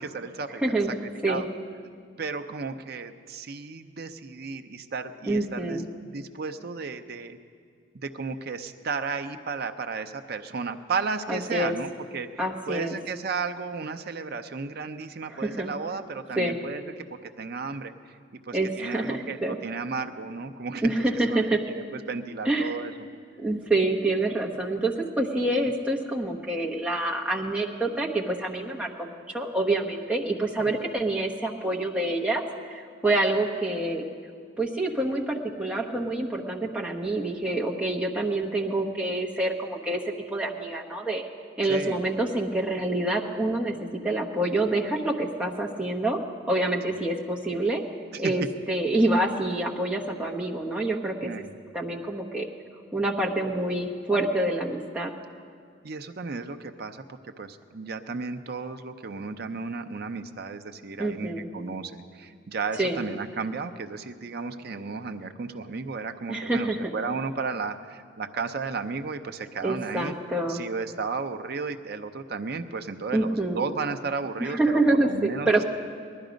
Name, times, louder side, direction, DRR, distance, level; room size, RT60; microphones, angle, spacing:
voice 1, 0.0-0.6 1.2-1.5 2.2-5.8 6.1-7.4 7.9-16.8 17.1-20.9 21.3-22.9 30.6-30.8 41.7-42.0 48.1-48.2 51.2-51.5 55.8-70.1 70.5-75.6, right 4 dB, 55° right, 7 dB, 0.6 m, -34 dB
voice 2, 0.6-1.4 5.3-5.9 11.3-11.7 12.4-13.0 15.3-15.7 16.4-16.6 18.5-19.6 20.8-21.6 22.4-22.8 23.4-32.4 32.7-34.0 34.6-41.2 41.6-43.7 44.0-46.2 46.5-47.8 48.2-51.3 51.7-52.5 52.9-55.1 61.0-61.5 62.8-63.0 66.3-66.9 69.6-70.6 73.1-73.6 74.4-75.6, right 2 dB, 5° right, -2 dB, 1.0 m, -27 dB
19.0 x 12.0 x 5.2 m, 2.2 s
head